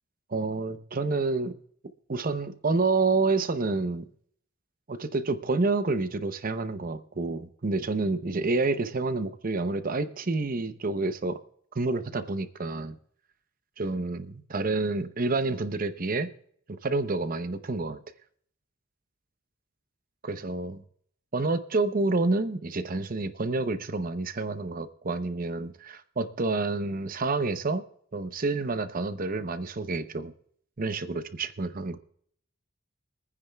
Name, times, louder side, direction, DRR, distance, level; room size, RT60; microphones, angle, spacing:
voice 1, 0.3-1.5 2.1-4.1 4.9-11.4 11.7-13.0 13.8-16.3 16.8-18.0 20.2-20.8 21.3-27.8 28.1-30.3 30.8-32.0, right 3 dB, 45° right, 11 dB, 0.7 m, -28 dB
24.5 x 9.6 x 2.3 m, 0.64 s
head